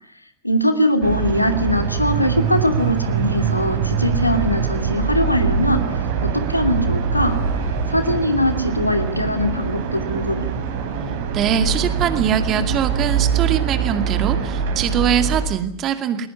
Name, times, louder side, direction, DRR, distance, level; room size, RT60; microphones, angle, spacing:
voice 1, 0.4-5.8 6.3-7.4 7.9-10.5, left 1 dB, 85° left, 7 dB, 2.7 m, -21 dB
sound 1, 1.0-15.5, right 6 dB, 50° right, 5.0 m, -23 dB
voice 2, 11.3-16.3, right 9 dB, 30° right, 9 dB, 2.3 m, -22 dB
20.5 x 19.5 x 9.7 m, 0.68 s
figure-of-eight pair, 90°, 0 cm